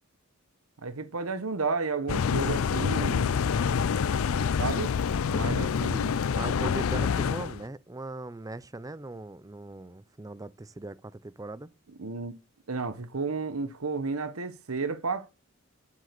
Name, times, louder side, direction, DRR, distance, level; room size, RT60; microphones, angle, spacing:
voice 1, 0.8-3.4 4.6-4.9 5.3-6.2 12.0-12.3 12.7-15.3, right 4 dB, 85° right, 1.1 m, -32 dB
sound 1, 2.1-7.6, left 6 dB, 75° left, 0.4 m, -27 dB
voice 2, 6.3-11.7, right 2 dB, 15° right, 0.4 m, -39 dB
7.9 x 7.6 x 6.7 m
head